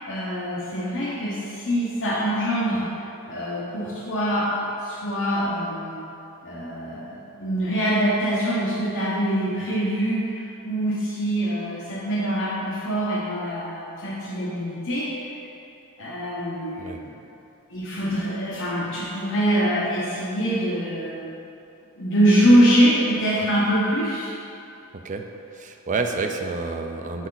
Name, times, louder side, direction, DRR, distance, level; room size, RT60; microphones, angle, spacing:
voice 1, 0.1-2.9 3.2-4.5 4.8-6.0 6.4-15.1 16.0-17.2 17.7-21.3 22.0-24.3, equal, 60° left, -6 dB, 1.1 m, -24 dB
voice 2, 24.9-25.3 25.5-27.3, right 4 dB, 35° right, 4 dB, 0.4 m, -29 dB
6.2 x 5.7 x 3.9 m, 2.7 s
head